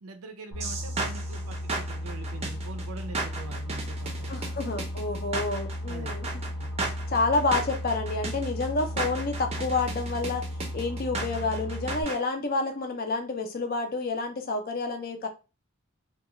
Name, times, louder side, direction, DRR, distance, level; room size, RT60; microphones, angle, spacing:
voice 1, 0.0-4.4 5.9-6.2 6.6-6.7, right 3 dB, 80° right, 0.5 m, -43 dB
Boat Water vehicle, 0.5-12.0, equal, 85° left, 0.9 m, -35 dB
sound 1, 0.6-12.2, right 3 dB, 30° right, 0.5 m, -35 dB
voice 2, 4.3-6.3 7.1-10.4 10.7-15.3, left 3 dB, 45° left, 0.5 m, -29 dB
2.3 x 2.3 x 2.9 m
head